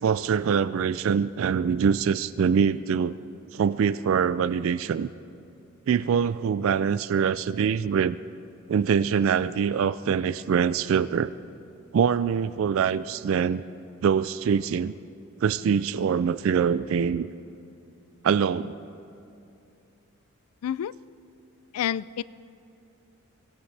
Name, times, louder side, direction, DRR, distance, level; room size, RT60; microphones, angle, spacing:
voice 1, 0.0-3.2 3.5-5.1 5.9-8.2 8.7-11.3 11.9-13.6 14.0-14.9 15.4-17.3 18.2-18.8, right 7 dB, 65° right, 16 dB, 0.3 m, -24 dB
voice 2, 20.6-20.9 21.7-22.2, left 9 dB, 90° left, 19 dB, 0.3 m, -28 dB
24.0 x 17.5 x 3.3 m, 2.6 s
head